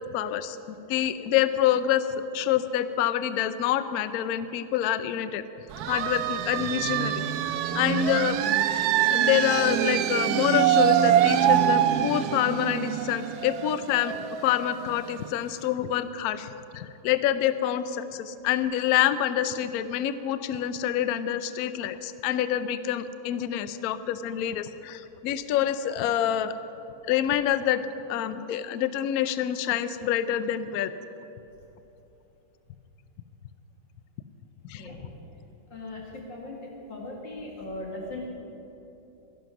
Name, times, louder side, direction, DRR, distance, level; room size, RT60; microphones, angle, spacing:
voice 1, 0.1-0.6 0.9-2.1 2.3-5.4 5.9-8.4 9.1-14.2 14.4-26.5 27.1-27.8 28.1-30.9 34.7-34.9, left 11 dB, 90° left, 12 dB, 0.8 m, -27 dB
sound 1, 5.7-15.2, right 10 dB, 85° right, 0.8 m, -24 dB
voice 2, 35.7-38.3, left 2 dB, 65° left, -2 dB, 2.9 m, -38 dB
13.5 x 11.0 x 5.9 m, 2.9 s
omnidirectional pair, 2.2 m